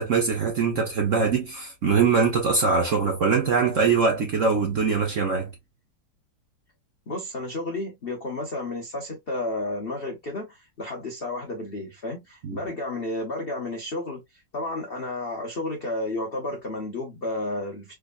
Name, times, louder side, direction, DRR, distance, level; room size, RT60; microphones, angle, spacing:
voice 1, 0.0-5.5 12.4-12.6, right 5 dB, 50° right, 0.9 m, -22 dB
voice 2, 7.1-17.9, left 2 dB, 60° left, 0.6 m, -32 dB
3.5 x 3.3 x 2.3 m
omnidirectional pair, 2.3 m